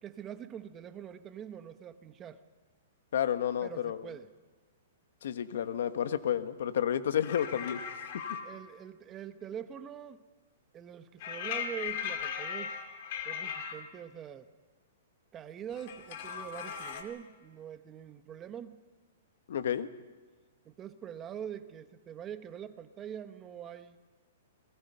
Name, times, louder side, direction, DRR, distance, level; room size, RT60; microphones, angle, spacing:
voice 1, 0.0-2.4 3.6-4.3 7.3-7.4 8.3-10.2 10.7-12.8 13.2-14.5 15.3-18.8 20.6-24.0, right 9 dB, 20° right, 10 dB, 1.0 m, -44 dB
voice 2, 3.1-4.0 5.2-7.8 19.5-19.9, left 9 dB, 70° left, 11 dB, 1.2 m, -30 dB
sound 1, 7.2-8.4 11.2-13.7 15.7-17.0, left 7 dB, 50° left, 2.5 m, -38 dB
28.5 x 20.5 x 5.6 m, 1.4 s
hypercardioid pair, 150°, 0 cm